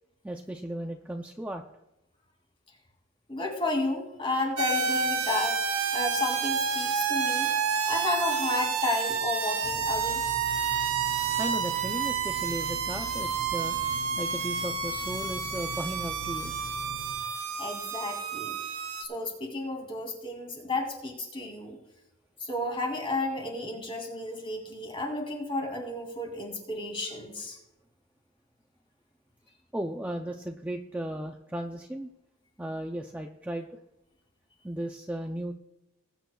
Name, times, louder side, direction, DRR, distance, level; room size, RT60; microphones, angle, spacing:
voice 1, 0.2-1.6 11.4-13.8 14.2-16.5 29.7-32.1 32.6-33.8 34.6-35.5, right 1 dB, 5° right, 3 dB, 0.4 m, -35 dB
voice 2, 3.3-5.6 5.9-7.5 7.8-10.2 17.6-18.5 19.0-21.8 22.4-27.6, left 2 dB, 25° left, 1 dB, 2.5 m, -32 dB
sound 1, 4.6-19.0, right 6 dB, 90° right, 1.1 m, -29 dB
sound 2, 9.6-17.1, left 2 dB, 85° left, 3.2 m, -44 dB
20.5 x 9.1 x 2.3 m, 0.91 s
head